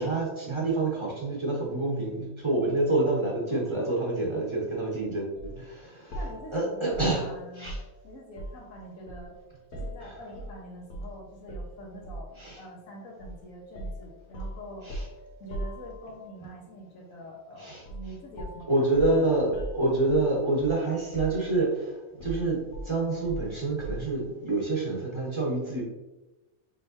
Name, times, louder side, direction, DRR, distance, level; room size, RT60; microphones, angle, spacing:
voice 1, 0.0-6.2 6.5-7.3 7.6-7.8 9.7-10.2 12.4-12.6 14.8-15.0 17.6-17.8 18.7-21.9 22.2-22.6 22.8-25.8, right 2 dB, 25° right, -4 dB, 1.0 m, -27 dB
voice 2, 3.5-4.0 6.1-7.7 8.0-9.4 9.7-14.9 15.4-18.9, equal, 70° left, -1 dB, 1.5 m, -45 dB
sound 1, 5.4-5.6 6.1-8.7 9.1-10.5 10.9-11.1 11.5-12.4 13.2-13.4 13.8-16.3 17.8-18.1 18.4-20.9 21.1-21.8 22.2-24.2, right 1 dB, 85° left, 1.3 m, -39 dB
5.1 x 3.5 x 2.7 m, 1.0 s
omnidirectional pair, 1.5 m